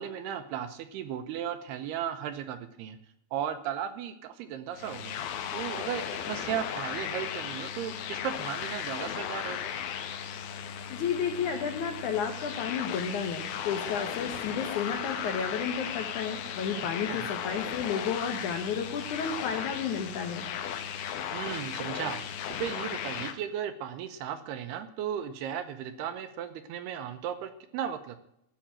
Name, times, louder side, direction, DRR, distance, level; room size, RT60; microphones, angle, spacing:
voice 1, 0.0-3.0 3.3-5.2 5.5-9.7 17.1-17.3 21.3-22.2 22.5-28.2, right 9 dB, 80° right, 9 dB, 2.5 m, -36 dB
sound 1, 4.7-23.4, left 8 dB, 70° left, 2.6 m, -36 dB
voice 2, 10.9-20.5, left 6 dB, 90° left, 5 dB, 1.7 m, -32 dB
14.5 x 5.8 x 8.8 m, 0.78 s
omnidirectional pair, 5.2 m